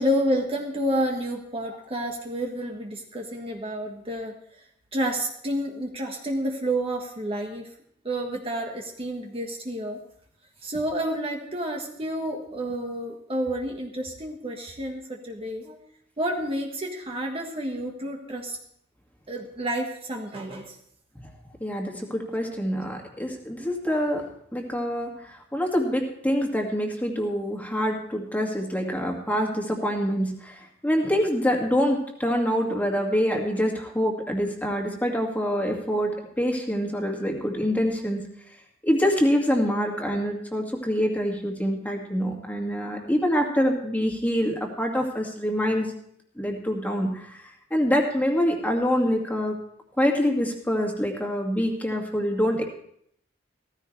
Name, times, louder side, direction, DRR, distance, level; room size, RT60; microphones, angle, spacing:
voice 1, 0.0-4.3 4.9-7.7 8.0-10.0 10.6-15.8 16.2-18.6 19.3-20.7, equal, 30° right, 1 dB, 1.5 m, -29 dB
voice 2, 21.6-24.2 24.5-25.1 25.5-38.2 38.8-45.9 46.4-47.4 47.7-49.5 50.0-52.6, equal, 10° left, 1 dB, 2.1 m, -25 dB
15.5 x 15.0 x 3.3 m, 0.69 s
head